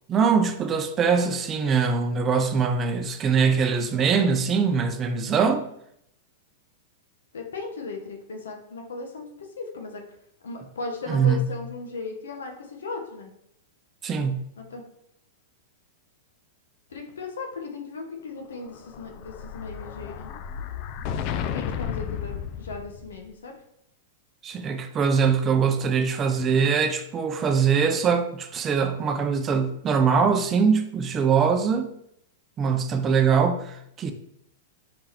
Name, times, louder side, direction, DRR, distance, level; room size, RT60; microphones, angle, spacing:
voice 1, 0.1-5.7 11.1-11.5 14.0-14.5 24.4-31.9 32.6-34.1, right 6 dB, 25° right, 0.5 m, -22 dB
voice 2, 7.3-9.3 9.6-10.0 10.4-13.3 14.6-14.8 16.9-20.3 21.3-23.5, left 3 dB, 85° left, 0.9 m, -37 dB
Explosion, 18.6-23.3, left 8 dB, 50° left, 0.3 m, -33 dB
4.8 x 3.8 x 2.9 m
hypercardioid pair, 115°, 0 cm